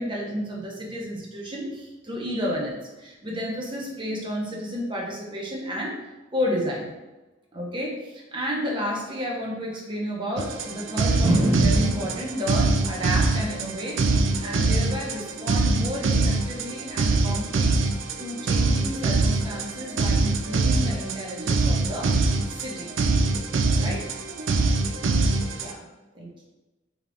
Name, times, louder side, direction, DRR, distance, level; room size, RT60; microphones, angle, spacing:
voice 1, 0.0-5.9 6.3-6.9 7.5-14.0 14.4-17.7 18.2-22.1 22.5-22.9 23.8-24.1 25.6-25.9 26.1-26.4, equal, 25° right, -2 dB, 0.8 m, -30 dB
sound 1, 10.4-25.7, right 3 dB, 70° right, 0.4 m, -24 dB
4.3 x 3.5 x 2.5 m, 1.1 s
head